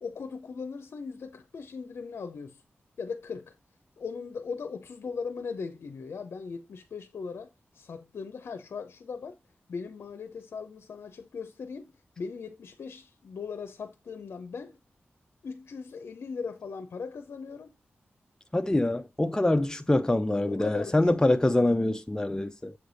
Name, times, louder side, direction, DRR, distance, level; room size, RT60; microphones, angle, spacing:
voice 1, 0.0-2.6 3.0-3.5 4.0-7.5 7.7-9.4 9.7-14.8 15.4-17.7 20.5-21.2, left 5 dB, 80° left, 0.6 m, -39 dB
voice 2, 18.5-22.7, left 1 dB, 15° left, 0.6 m, -25 dB
7.3 x 3.3 x 4.0 m
cardioid pair, 55°, 4 cm